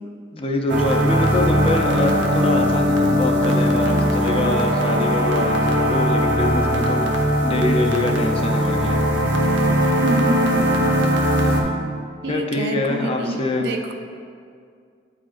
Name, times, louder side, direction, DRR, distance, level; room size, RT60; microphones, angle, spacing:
voice 1, 0.3-9.1 11.4-11.7 12.3-13.7, left 2 dB, 30° left, 2 dB, 0.5 m, -25 dB
sound 1, 0.7-11.6, equal, 90° right, 0.8 m, -19 dB
voice 2, 10.0-10.9 12.2-13.9, right 2 dB, 60° right, 4 dB, 0.5 m, -26 dB
9.4 x 4.9 x 2.4 m, 2.2 s
head